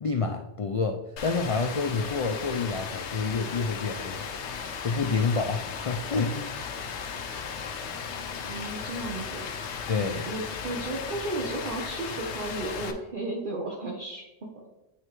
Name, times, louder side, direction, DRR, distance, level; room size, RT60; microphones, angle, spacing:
voice 1, 0.0-4.3 4.8-6.6 9.9-10.3, left 4 dB, 65° left, 4 dB, 0.3 m, -28 dB
Rain, 1.2-12.9, left 6 dB, 85° left, 0.9 m, -36 dB
voice 2, 8.4-9.5 10.3-14.2, right 2 dB, 50° right, -2 dB, 1.0 m, -34 dB
9.4 x 3.3 x 3.1 m, 0.96 s
omnidirectional pair, 1.1 m